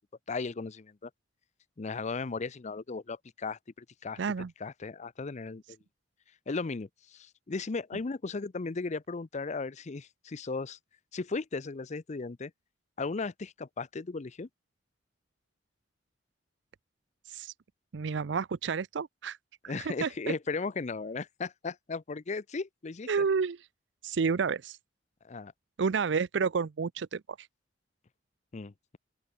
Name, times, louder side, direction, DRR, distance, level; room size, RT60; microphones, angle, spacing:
voice 1, 0.3-1.1 1.8-4.2 4.6-5.6 6.5-10.8 11.1-12.5 13.0-14.5 19.7-23.1 25.2-25.5 28.5-29.0, left 4 dB, 40° left, 0.6 m, -36 dB
voice 2, 4.2-4.5 17.3-17.5 17.9-19.4 19.6-20.3 23.1-23.6 24.0-24.8 25.8-27.5, right 5 dB, 75° right, 0.5 m, -30 dB
open air
head